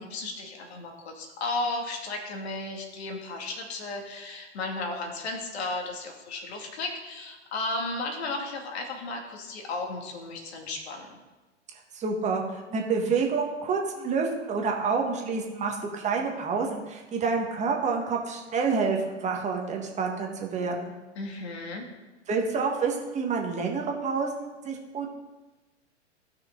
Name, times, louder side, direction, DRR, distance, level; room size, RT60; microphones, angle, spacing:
voice 1, 0.0-11.2 21.1-21.9, left 2 dB, 60° left, 2 dB, 2.4 m, -34 dB
voice 2, 11.9-20.9 22.3-25.1, right 5 dB, 20° right, 1 dB, 1.6 m, -28 dB
16.0 x 6.0 x 3.8 m, 1.1 s
hypercardioid pair, 115°, 36 cm